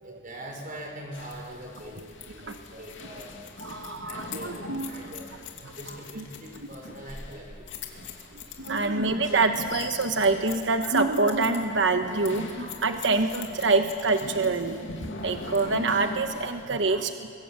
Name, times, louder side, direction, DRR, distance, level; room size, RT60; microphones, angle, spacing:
voice 1, 0.0-3.4 3.9-5.3 5.8-7.7, right 1 dB, 45° right, 1 dB, 5.9 m, -42 dB
sound 1, 1.1-16.6, left 3 dB, 90° left, 2.7 m, -41 dB
voice 2, 3.6-4.9 5.6-5.7 6.2-6.3 8.3-17.3, right 3 dB, 75° right, 7 dB, 1.1 m, -26 dB
26.5 x 23.0 x 7.6 m, 2.6 s
head